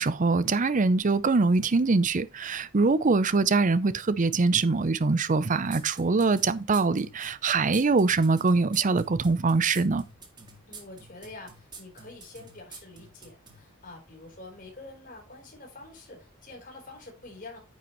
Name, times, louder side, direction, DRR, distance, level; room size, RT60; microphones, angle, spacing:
voice 1, 0.0-10.0, right 3 dB, 40° right, 0.6 m, -23 dB
sound 1, 5.7-13.6, right 4 dB, 20° right, 2.0 m, -46 dB
voice 2, 10.7-17.6, left 2 dB, 40° left, 4.0 m, -46 dB
9.4 x 7.3 x 3.1 m
head